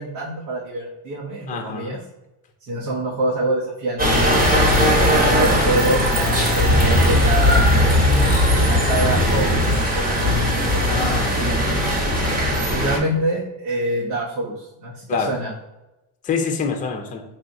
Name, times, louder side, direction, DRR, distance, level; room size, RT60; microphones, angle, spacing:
voice 1, 0.0-2.0 2.6-4.0 5.1-6.2 6.5-7.8 8.6-10.9 11.3-11.6 12.7-15.5, right 1 dB, 85° right, -5 dB, 1.1 m, -26 dB
voice 2, 1.5-2.0 4.7-5.0 10.9-11.5 15.1-15.3 16.2-17.2, left 5 dB, 20° left, 4 dB, 0.5 m, -26 dB
sound 1, 4.0-13.0, equal, 20° right, 1.0 m, -18 dB
4.4 x 3.3 x 2.6 m, 0.97 s
supercardioid pair, 105°, 48 cm